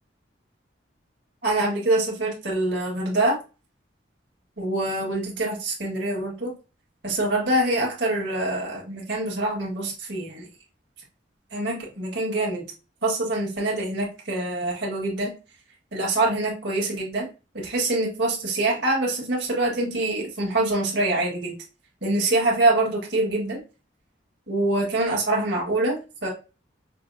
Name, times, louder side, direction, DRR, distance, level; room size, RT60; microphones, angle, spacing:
voice 1, 1.4-3.4 4.6-6.5 7.0-10.5 11.5-12.7 13.0-15.3 15.9-17.3 17.5-21.5 22.0-23.6 24.5-26.3, right 2 dB, 60° right, -2 dB, 1.6 m, -25 dB
5.9 x 2.0 x 2.6 m, 0.31 s
head